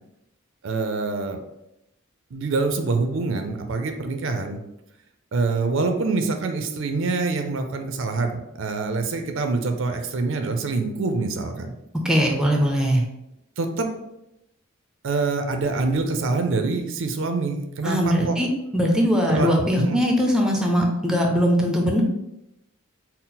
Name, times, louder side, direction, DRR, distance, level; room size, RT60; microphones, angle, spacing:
voice 1, 0.6-1.4 2.3-4.6 5.3-11.7 13.6-13.9 15.0-18.4 19.3-19.5 19.8-20.0, right 3 dB, 65° right, 6 dB, 0.5 m, -25 dB
voice 2, 12.0-13.0 17.8-18.5 18.7-22.0, equal, 5° right, 1 dB, 0.5 m, -20 dB
4.2 x 2.0 x 3.9 m, 0.84 s
head